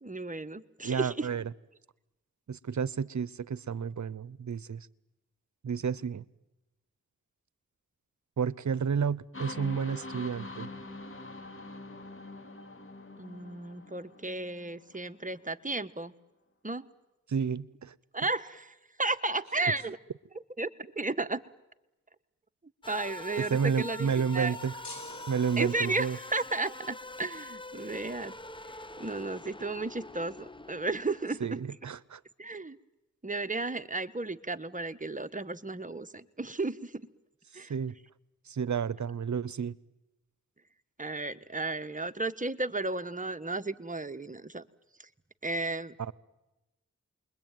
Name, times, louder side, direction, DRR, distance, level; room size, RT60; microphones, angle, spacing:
voice 1, 0.0-1.3 13.2-16.1 16.6-16.9 18.1-20.0 20.6-21.4 22.9-24.6 25.6-28.3 29.0-31.6 32.4-32.8 33.2-36.9 37.5-37.7 41.0-44.6 45.4-45.9, right 3 dB, 25° right, 9 dB, 1.5 m, -34 dB
voice 2, 0.8-1.5 2.5-4.9 5.6-6.2 8.4-10.7 17.3-17.9 23.4-24.8 25.3-26.2 31.4-32.2 37.7-37.9 38.5-39.8 46.0-46.1, right 6 dB, 60° right, 20 dB, 0.9 m, -31 dB
sound 1, 9.3-15.1, left 2 dB, 40° left, 3.6 m, -44 dB
sound 2, 22.8-31.6, left 2 dB, 15° left, 0.9 m, -45 dB
sound 3, 24.8-26.2, left 2 dB, 55° left, 7.8 m, -47 dB
28.5 x 22.0 x 9.3 m, 0.99 s
cardioid pair, 40°, 33 cm